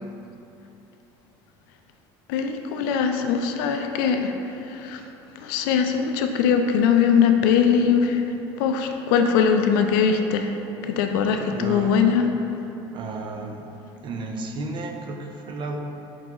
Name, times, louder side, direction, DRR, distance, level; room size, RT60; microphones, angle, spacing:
voice 1, 2.3-4.3 4.8-5.0 5.4-8.2 8.6-10.5 10.9-12.3, left 7 dB, 80° left, 5 dB, 0.4 m, -21 dB
voice 2, 11.2-12.0 12.9-13.6 14.0-15.8, right 3 dB, 45° right, 3 dB, 0.5 m, -33 dB
4.6 x 3.8 x 2.9 m, 3.0 s
supercardioid pair, 95°, 11 cm